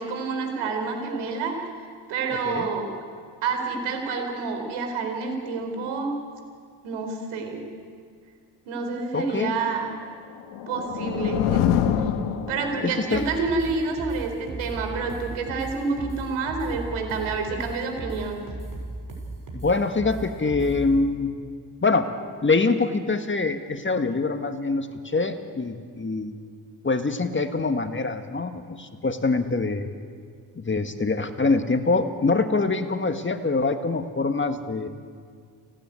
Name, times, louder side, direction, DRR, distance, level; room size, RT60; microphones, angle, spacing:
voice 1, 0.0-1.5 2.1-2.9 3.4-6.1 6.8-7.7 8.7-9.9 10.7-11.8 12.5-18.5, right 4 dB, 75° right, 4 dB, 4.3 m, -28 dB
voice 2, 9.1-9.5 12.8-13.2 19.5-21.3 21.8-22.1 22.4-26.3 26.8-29.9 30.5-34.9, left 3 dB, 25° left, 7 dB, 1.7 m, -24 dB
sound 1, 10.2-13.1, left 9 dB, 75° left, 1.4 m, -25 dB
sound 2, 13.1-21.0, right 2 dB, 40° right, 6.5 m, -36 dB
29.5 x 10.5 x 9.7 m, 2.1 s
hypercardioid pair, 60°, 48 cm